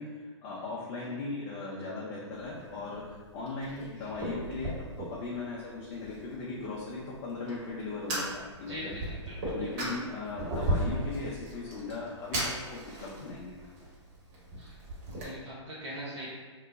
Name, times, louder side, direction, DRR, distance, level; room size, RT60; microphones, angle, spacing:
voice 1, 0.0-8.9 9.5-13.5, left 3 dB, 30° left, -5 dB, 0.6 m, -38 dB
Fire, 2.3-15.3, right 1 dB, 40° right, 1.4 m, -37 dB
voice 2, 8.7-9.9 14.6-16.3, equal, 70° right, -8 dB, 0.9 m, -42 dB
3.0 x 2.2 x 3.8 m, 1.4 s
hypercardioid pair, 125°, 15 cm